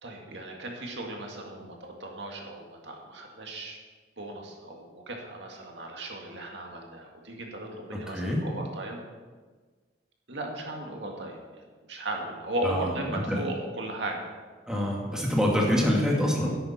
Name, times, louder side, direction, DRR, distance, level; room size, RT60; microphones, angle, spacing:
voice 1, 0.0-3.8 4.2-9.0 10.3-14.2, right 1 dB, 75° right, 0 dB, 2.0 m, -36 dB
voice 2, 7.9-8.4 12.6-13.4 14.7-16.6, equal, 5° right, -3 dB, 2.1 m, -26 dB
13.0 x 11.0 x 4.3 m, 1.4 s
head